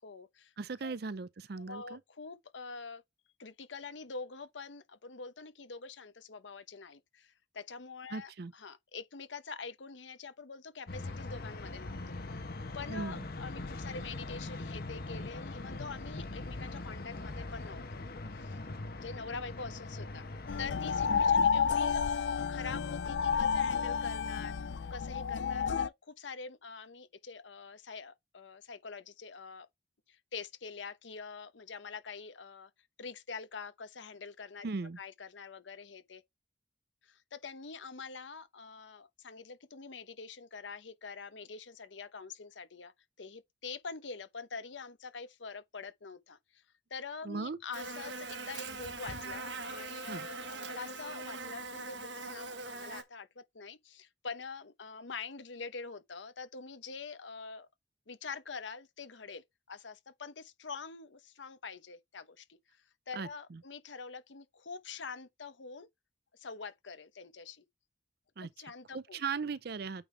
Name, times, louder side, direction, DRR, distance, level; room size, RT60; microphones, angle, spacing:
voice 1, 0.0-0.5 0.8-0.9 1.5-3.0 3.4-12.4 12.7-18.0 18.4-18.6 19.0-20.3 20.6-24.6 24.9-29.7 30.1-32.7 33.0-34.7 35.0-36.2 37.0-42.9 43.2-46.6 46.9-57.7 58.1-65.9 66.3-67.6 68.4-69.2, left 4 dB, 90° left, 0.9 m, -45 dB
voice 2, 0.6-2.0 8.1-8.5 12.9-13.3 21.1-21.5 34.6-35.0 47.2-47.6 50.1-50.3 63.1-63.6 68.4-68.5 68.9-70.1, right 4 dB, 60° right, 0.5 m, -38 dB
sound 1, 10.9-21.3, left 2 dB, 55° left, 1.0 m, -42 dB
sound 2, 20.5-25.9, left 6 dB, 75° left, 0.4 m, -30 dB
Buzz, 47.7-53.0, right 3 dB, 75° right, 1.2 m, -42 dB
8.8 x 4.1 x 3.3 m
head